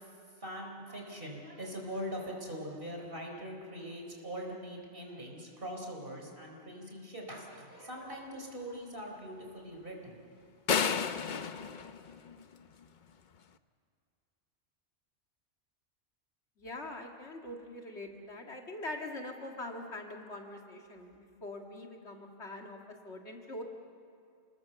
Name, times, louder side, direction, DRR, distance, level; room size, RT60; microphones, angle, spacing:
voice 1, 0.0-10.2, equal, 50° right, 1 dB, 4.5 m, -42 dB
sound 1, 10.7-12.8, left 6 dB, 45° left, 0.8 m, -32 dB
voice 2, 16.6-23.6, left 1 dB, 65° left, 2 dB, 2.4 m, -43 dB
29.0 x 20.0 x 7.0 m, 2.4 s
omnidirectional pair, 1.2 m